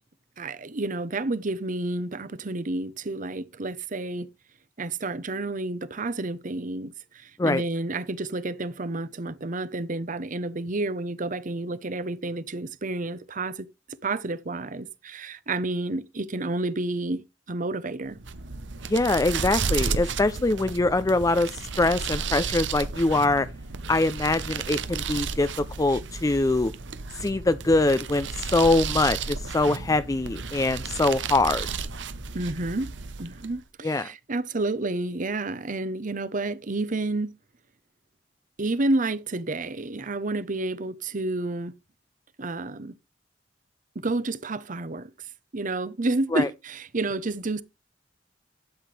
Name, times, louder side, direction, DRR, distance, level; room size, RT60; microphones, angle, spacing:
voice 1, 0.4-4.3 4.8-13.7 14.0-17.2 17.5-18.2 32.3-32.9 33.2-37.3 38.6-41.7 42.4-42.9 43.9-45.1 45.5-47.6, right 2 dB, 45° right, 0.9 m, -30 dB
sound 1, 18.1-33.6, right 5 dB, 85° right, 1.0 m, -33 dB
voice 2, 18.9-23.5 23.9-25.5 25.8-26.7 27.2-31.7 33.8-34.1 46.3-46.5, left 2 dB, 20° left, 0.4 m, -23 dB
12.5 x 7.9 x 3.3 m
head